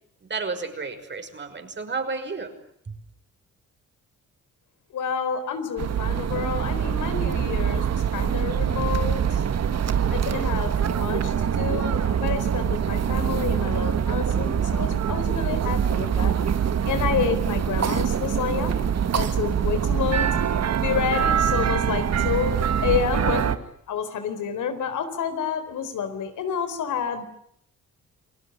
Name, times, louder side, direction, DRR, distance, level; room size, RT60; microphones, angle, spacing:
voice 1, 0.3-2.5 2.9-3.0, right 4 dB, 40° right, 7 dB, 5.8 m, -31 dB
voice 2, 4.9-9.4 10.1-16.3 16.8-18.7 19.1-23.5 23.9-27.3, left 7 dB, 80° left, 9 dB, 4.2 m, -29 dB
sound 1, 5.8-23.6, right 8 dB, 60° right, 1.7 m, -24 dB
29.0 x 19.5 x 9.8 m, 0.70 s
cardioid pair, 90°, 30 cm